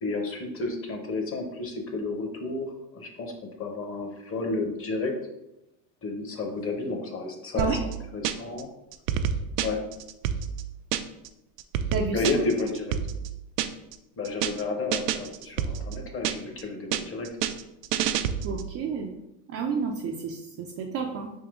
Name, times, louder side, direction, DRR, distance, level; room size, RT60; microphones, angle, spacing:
voice 1, 0.0-3.3 3.6-5.1 6.0-7.7 8.1-8.7 9.6-9.8 12.1-13.0 14.2-17.3, left 3 dB, 30° left, 3 dB, 0.9 m, -31 dB
sound 1, 7.6-8.6 8.9-11.3 11.6-13.9 14.2-14.6 14.9-16.6 16.9-18.7, right 9 dB, 80° right, 0.6 m, -29 dB
voice 2, 11.9-12.2 18.4-19.2 19.5-21.3, right 5 dB, 35° right, 2 dB, 0.4 m, -30 dB
3.7 x 2.8 x 4.8 m, 0.87 s
supercardioid pair, 115°, 48 cm